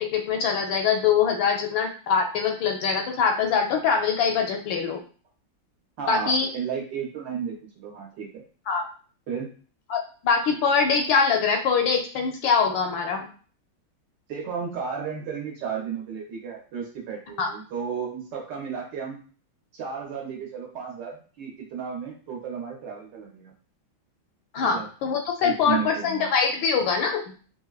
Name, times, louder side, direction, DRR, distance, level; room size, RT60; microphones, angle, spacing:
voice 1, 0.0-5.0 6.1-6.5 8.7-8.8 9.9-13.3 17.4-17.5 24.5-27.2, left 6 dB, 75° left, 3 dB, 1.3 m, -23 dB
voice 2, 6.0-8.4 9.3-9.5 14.3-19.2 19.7-23.5 24.6-24.9 25.4-26.3, right 7 dB, 65° right, -1 dB, 1.4 m, -33 dB
4.1 x 2.1 x 2.3 m, 0.40 s
omnidirectional pair, 2.2 m